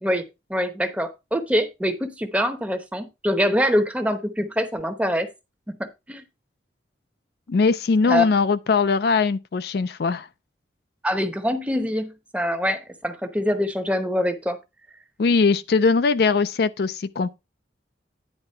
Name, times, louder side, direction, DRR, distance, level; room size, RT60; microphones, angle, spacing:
voice 1, 0.0-5.3 5.7-6.2 8.1-8.3 11.0-14.6, equal, 5° right, 0.8 m, -24 dB
voice 2, 7.5-10.3 15.2-17.4, left 4 dB, 55° left, 0.4 m, -20 dB
10.0 x 3.7 x 5.5 m
head